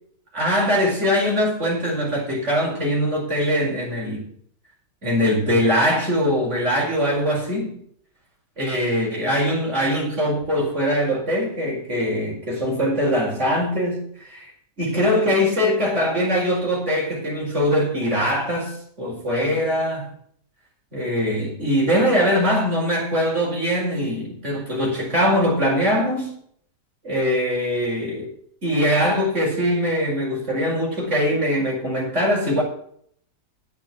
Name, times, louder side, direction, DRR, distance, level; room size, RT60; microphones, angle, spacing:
voice 1, 0.3-4.3 5.0-7.8 8.6-14.5 14.8-20.1 20.9-26.3 27.0-28.3 28.6-32.6, equal, 40° right, -2 dB, 5.3 m, -22 dB
10.5 x 9.2 x 6.1 m, 0.63 s
omnidirectional pair, 1.8 m